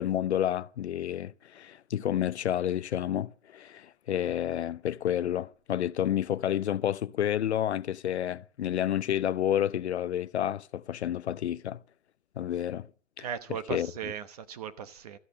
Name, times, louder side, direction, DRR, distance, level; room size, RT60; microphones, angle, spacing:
voice 1, 0.0-11.8 12.4-12.9 13.2-13.9, left 11 dB, 60° left, 0.6 m, -30 dB
voice 2, 13.2-15.2, right 8 dB, 30° right, 1.0 m, -37 dB
13.5 x 8.5 x 8.5 m
hypercardioid pair, 165°, 39 cm